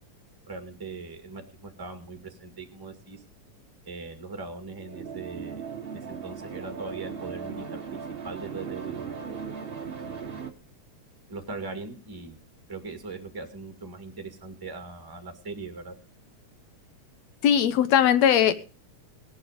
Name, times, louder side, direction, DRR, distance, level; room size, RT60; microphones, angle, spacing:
voice 1, 0.5-3.2 3.9-5.6 6.1-8.0 8.2-9.4 11.3-12.4 12.7-15.9, right 3 dB, 10° right, 6 dB, 1.8 m, -40 dB
sound 1, 4.8-10.5, right 6 dB, 60° right, 0.5 m, -37 dB
voice 2, 17.4-18.6, left 9 dB, 70° left, 13 dB, 2.2 m, -20 dB
18.0 x 10.5 x 5.2 m, 0.37 s
omnidirectional pair, 3.4 m